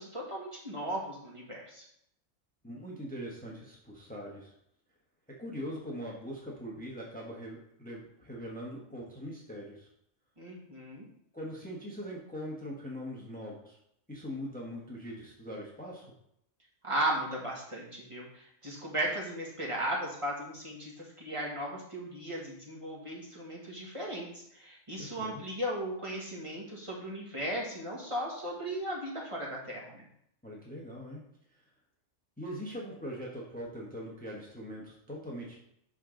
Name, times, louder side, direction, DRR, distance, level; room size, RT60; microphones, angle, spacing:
voice 1, 0.0-1.8 10.4-11.0 16.8-30.0, right 1 dB, 25° right, -4 dB, 1.8 m, -36 dB
voice 2, 2.6-4.5 5.4-9.9 11.3-13.8 14.1-16.1 25.0-25.4 30.4-31.2 31.5-31.6 32.4-35.6, equal, 5° left, -3 dB, 1.1 m, -41 dB
11.0 x 3.7 x 3.9 m, 0.73 s
omnidirectional pair, 1.3 m